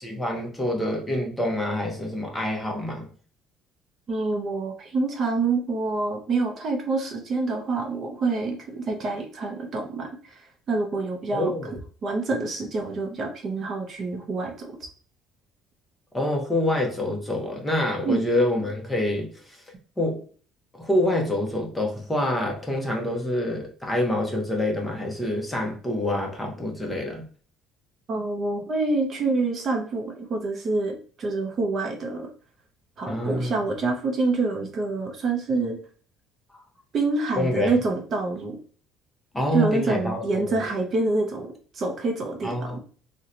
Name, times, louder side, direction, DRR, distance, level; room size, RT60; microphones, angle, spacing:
voice 1, 0.0-3.1 11.3-11.7 16.1-19.6 20.0-20.2 20.7-27.2 33.1-33.6 37.4-37.8 39.3-40.5 42.4-42.8, left 1 dB, 10° left, 0.7 m, -26 dB
voice 2, 4.1-10.4 10.7-11.5 12.0-14.7 18.0-18.2 28.1-32.3 33.0-35.8 36.9-38.6 39.5-42.8, right 3 dB, 35° right, 0.5 m, -27 dB
2.8 x 2.1 x 3.7 m
cardioid pair, 155°, 0 cm